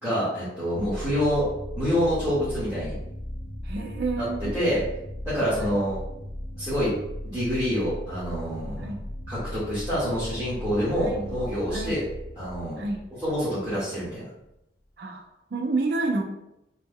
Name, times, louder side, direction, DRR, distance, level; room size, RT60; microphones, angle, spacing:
voice 1, 0.0-1.4 1.8-3.0 4.2-4.3 4.5-4.8 5.2-6.0 6.6-6.9 7.3-8.9 9.3-12.0 12.4-12.8 13.2-14.2, equal, 15° right, -13 dB, 1.2 m, -27 dB
sound 1, 0.7-14.2, left 1 dB, 25° left, 0.4 m, -37 dB
voice 2, 3.6-4.6 5.6-5.8 8.8-9.0 11.0-11.3 11.7-12.0 12.8-13.0 15.0-16.2, right 3 dB, 60° right, 3 dB, 0.5 m, -30 dB
3.1 x 2.1 x 3.5 m, 0.87 s
head